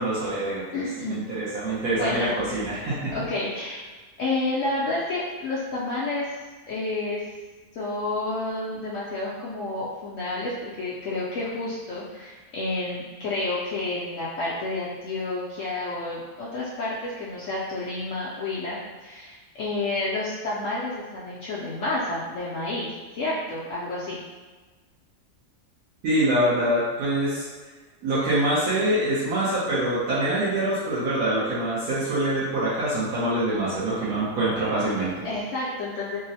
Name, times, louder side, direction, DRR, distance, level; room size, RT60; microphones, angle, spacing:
voice 1, 0.0-3.1 26.0-27.4 28.0-35.1, right 1 dB, 85° right, -10 dB, 1.3 m, -25 dB
voice 2, 0.7-1.3 2.0-2.6 3.1-3.8 4.2-6.3 6.7-7.3 7.7-24.2 35.2-36.2, left 2 dB, 70° left, -7 dB, 0.8 m, -30 dB
3.6 x 2.0 x 2.7 m, 1.3 s
omnidirectional pair, 1.6 m